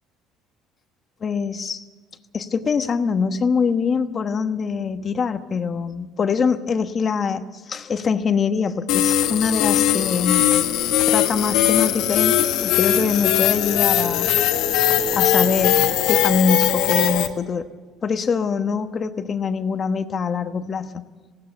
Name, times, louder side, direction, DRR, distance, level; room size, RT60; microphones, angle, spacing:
voice 1, 1.2-1.8 2.3-10.5 11.1-14.3 15.1-17.7 18.0-21.0, left 5 dB, 30° left, 9 dB, 1.1 m, -24 dB
sound 1, 8.9-17.3, left 10 dB, 75° left, 1.5 m, -20 dB
19.5 x 16.5 x 8.1 m, 1.4 s
cardioid pair, 130°, 0 cm